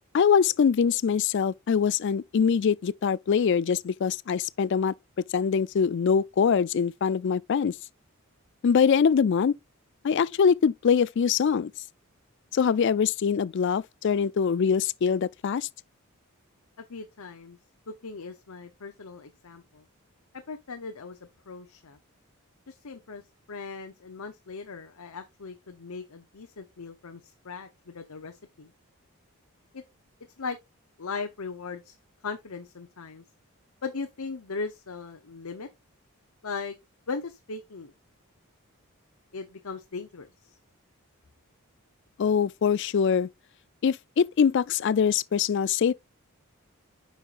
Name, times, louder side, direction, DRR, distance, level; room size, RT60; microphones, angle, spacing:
voice 1, 0.1-4.9 5.3-7.7 8.6-9.5 10.0-11.7 12.5-15.7 42.2-43.3 43.8-45.9, left 6 dB, 55° left, 0.3 m, -23 dB
voice 2, 16.8-17.6 17.9-19.8 20.5-21.2 21.5-22.0 22.7-23.2 23.5-28.7 29.7-29.8 30.4-30.6 31.0-31.9 32.2-33.2 33.8-35.7 36.4-36.8 37.1-37.9 39.3-40.3, left 4 dB, 80° left, 0.8 m, -38 dB
9.2 x 5.7 x 2.5 m
head